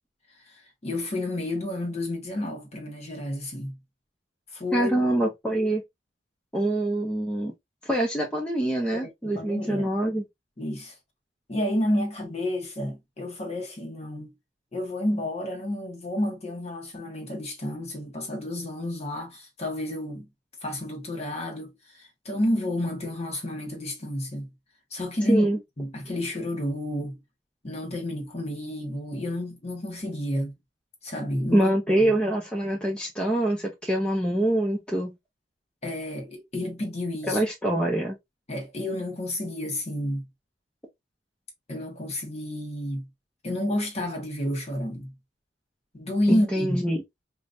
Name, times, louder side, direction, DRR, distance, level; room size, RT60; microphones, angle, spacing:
voice 1, 0.8-3.8 4.5-5.0 8.9-9.9 10.6-10.9 11.5-14.3 14.7-20.3 20.6-21.7 22.0-24.5 24.9-25.5 25.8-27.2 27.6-30.5 31.0-31.7 32.0-32.1 35.8-37.4 38.5-40.3 41.7-43.1 43.4-45.1 45.9-46.8, left 1 dB, 35° left, 1.3 m, -30 dB
voice 2, 4.7-5.8 6.5-7.5 7.8-10.2 25.3-25.6 31.5-35.1 37.2-38.2 46.3-47.0, right 1 dB, 5° left, 0.7 m, -25 dB
5.0 x 2.2 x 2.6 m
head